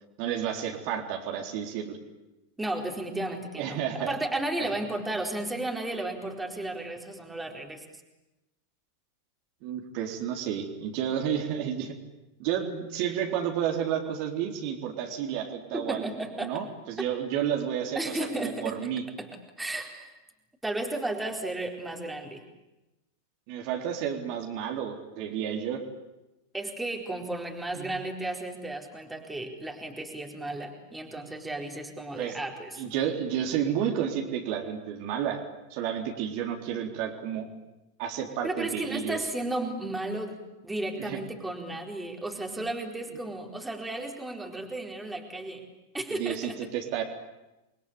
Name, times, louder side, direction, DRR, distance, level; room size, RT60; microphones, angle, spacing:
voice 1, 0.2-2.0 3.6-4.2 4.6-4.7 9.6-11.9 12.4-19.0 23.5-25.8 27.7-27.9 32.2-32.4 32.8-35.4 35.7-37.5 38.0-39.2 41.0-41.2 46.1-47.0, right 9 dB, 45° right, 1 dB, 3.9 m, -31 dB
voice 2, 2.6-7.8 15.7-16.6 17.9-18.9 19.2-19.3 19.6-20.2 20.6-22.4 26.5-32.8 38.4-40.4 40.6-45.6 45.9-46.6, right 2 dB, 5° right, 1 dB, 4.3 m, -34 dB
29.5 x 23.0 x 8.7 m, 0.98 s
figure-of-eight pair, 90°, 0 cm